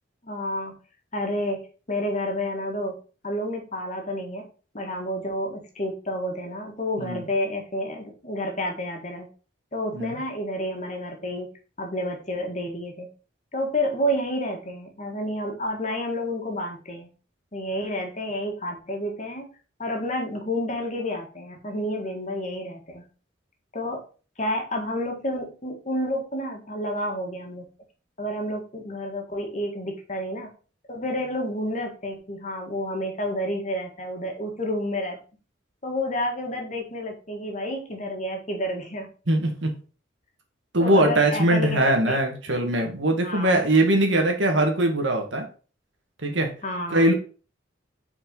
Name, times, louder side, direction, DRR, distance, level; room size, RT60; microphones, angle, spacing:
voice 1, 0.2-0.7 1.1-1.6 1.9-3.0 3.2-4.5 4.7-9.3 9.7-11.5 11.8-13.1 13.5-17.1 17.5-19.5 19.8-23.0 23.7-24.0 24.4-27.7 28.2-30.5 30.9-35.2 35.8-39.1 40.8-41.8 42.1-42.2 43.2-43.6 46.6-47.1, left 1 dB, 40° left, 1 dB, 1.7 m, -30 dB
voice 2, 39.3-39.7 40.7-45.5 46.2-46.5 46.9-47.1, right 1 dB, 70° right, 4 dB, 1.6 m, -21 dB
5.4 x 4.4 x 5.3 m, 0.37 s
head